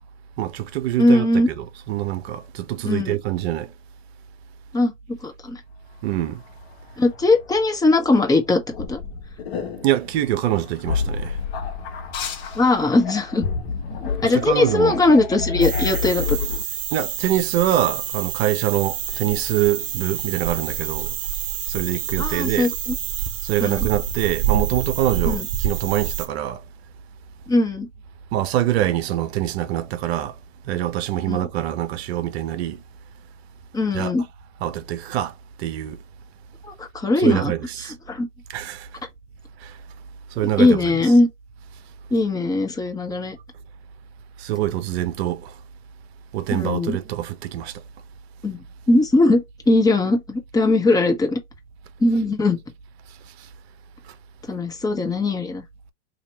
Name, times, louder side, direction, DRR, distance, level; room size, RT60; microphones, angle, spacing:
voice 1, 0.4-1.3 1.9-3.7 6.0-6.4 9.8-11.4 14.2-15.0 16.9-21.1 21.7-22.7 23.4-26.6 28.3-30.3 30.7-32.8 33.9-34.1 34.6-35.3 35.6-36.0 37.2-37.9 38.5-38.9 39.6-39.7 40.4-40.8 44.4-45.5 46.3-47.7, right 13 dB, 55° right, 0.8 m, -24 dB
voice 2, 1.0-1.5 2.8-3.2 4.7-5.6 7.0-8.6 8.9-9.0 12.5-13.4 14.2-16.4 22.2-23.0 23.6-23.9 25.3-25.5 27.5-27.9 31.3-31.5 33.7-34.3 36.8-37.5 37.8-38.3 40.4-41.3 42.1-43.4 46.5-47.0 48.4-48.6 48.9-51.4 52.0-52.6 54.5-55.6, left 2 dB, 10° left, 1.0 m, -20 dB
sound 1, 6.2-16.6, left 5 dB, 55° left, 1.3 m, -30 dB
sound 2, 15.6-26.3, right 10 dB, 25° right, 0.4 m, -27 dB
2.9 x 2.9 x 4.0 m
hypercardioid pair, 100°, 37 cm